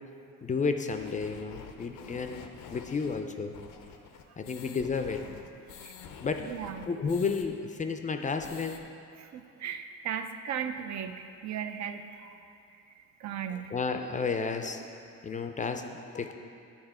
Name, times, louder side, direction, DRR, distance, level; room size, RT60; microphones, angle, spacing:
voice 1, 0.4-3.5 4.4-5.3 6.2-6.5 6.9-8.8 13.5-16.3, left 5 dB, 25° left, 6 dB, 0.4 m, -32 dB
sound 1, 0.9-7.5 7.8-7.9 8.2-8.8, left 7 dB, 85° left, 0.5 m, -48 dB
voice 2, 6.4-6.9 9.2-12.4 13.0-13.7, right 8 dB, 65° right, 7 dB, 0.5 m, -37 dB
8.8 x 3.5 x 4.8 m, 2.5 s
cardioid pair, 90°, 30 cm